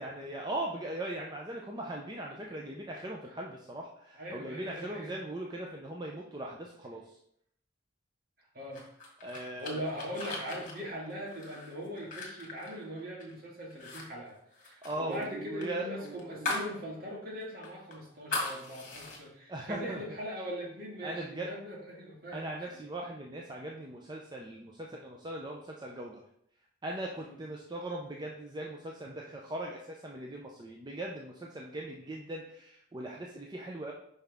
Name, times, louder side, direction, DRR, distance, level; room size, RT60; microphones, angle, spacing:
voice 1, 0.0-7.2 9.2-9.9 14.8-16.6 19.5-20.0 21.0-21.5 22.3-26.2 26.8-33.9, right 1 dB, 20° right, -1 dB, 0.5 m, -39 dB
voice 2, 4.2-5.1 8.5-8.8 9.3-22.7 27.2-27.4 32.0-32.2, equal, 50° right, -2 dB, 1.8 m, -41 dB
sound 1, 8.7-13.3 13.7-14.0 14.3-16.7 17.1-17.2 17.6-19.2, left 3 dB, 45° left, 1.5 m, -39 dB
5.9 x 5.5 x 3.5 m, 0.70 s
head